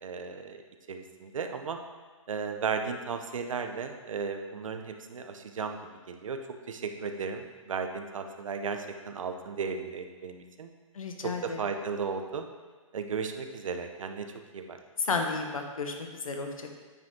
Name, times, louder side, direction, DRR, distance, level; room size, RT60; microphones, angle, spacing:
voice 1, 0.0-0.6 0.9-1.8 2.3-5.8 6.1-6.4 6.7-10.7 11.2-12.5 12.9-14.3 14.5-14.8, right 5 dB, 70° right, 6 dB, 0.8 m, -35 dB
voice 2, 10.9-11.6 15.0-16.7, left 4 dB, 75° left, 4 dB, 1.2 m, -32 dB
9.2 x 5.1 x 3.7 m, 1.4 s
hypercardioid pair, 140°, 18 cm